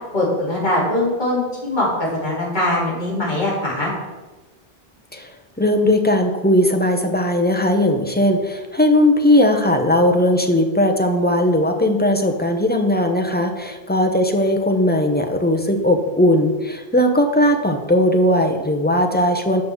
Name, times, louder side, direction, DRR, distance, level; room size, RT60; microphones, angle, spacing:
voice 1, 0.1-3.9, left 1 dB, 50° left, -6 dB, 3.2 m, -21 dB
voice 2, 5.1-19.6, left 1 dB, 10° left, 4 dB, 0.7 m, -18 dB
6.7 x 5.4 x 7.0 m, 1.2 s
omnidirectional pair, 1.0 m